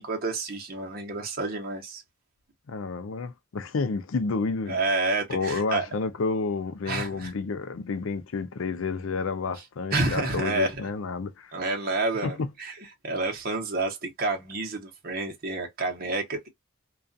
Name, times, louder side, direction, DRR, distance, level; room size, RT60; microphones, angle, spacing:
voice 1, 0.0-2.0 4.7-5.9 6.9-7.3 9.9-10.8 11.5-12.7 13.0-16.5, right 2 dB, 50° right, 0.9 m, -29 dB
voice 2, 2.7-4.8 5.3-11.5 12.2-12.5, left 4 dB, 85° left, 0.5 m, -30 dB
2.4 x 2.3 x 2.5 m
head